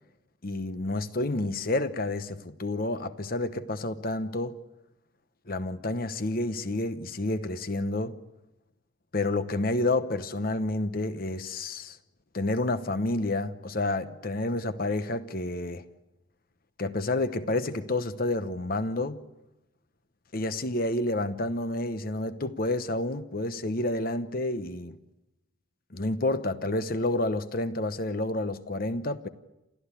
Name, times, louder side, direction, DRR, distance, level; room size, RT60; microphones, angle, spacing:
voice 1, 0.4-4.6 5.5-8.2 9.1-12.0 12.3-15.8 16.8-19.2 20.3-25.0 25.9-29.3, left 2 dB, 45° left, 1.0 m, -29 dB
29.0 x 14.0 x 9.8 m
head